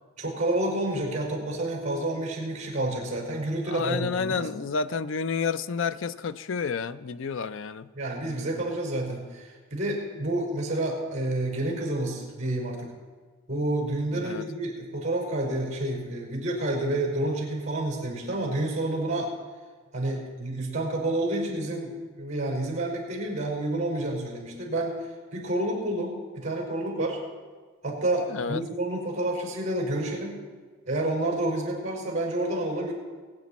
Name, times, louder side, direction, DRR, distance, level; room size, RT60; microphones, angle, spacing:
voice 1, 0.2-4.5 7.9-12.9 13.5-19.3 19.9-25.0 25.3-27.2 27.8-30.4 30.9-32.9, right 1 dB, 35° right, 0 dB, 4.7 m, -29 dB
voice 2, 3.7-7.9 14.1-14.5 28.3-28.6, left 5 dB, 65° left, 14 dB, 0.5 m, -30 dB
21.5 x 9.4 x 4.2 m, 1.4 s
head